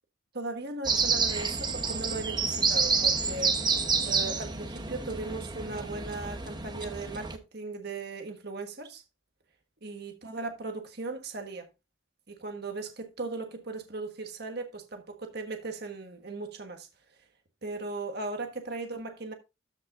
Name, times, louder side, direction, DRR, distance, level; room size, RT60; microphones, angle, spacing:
voice 1, 0.3-3.6 4.0-9.0 9.8-11.7 12.3-16.9 17.6-19.3, right 3 dB, 55° right, 1.5 m, -37 dB
sound 1, 0.8-7.4, right 4 dB, 20° right, 0.9 m, -29 dB
13.5 x 5.3 x 2.6 m
head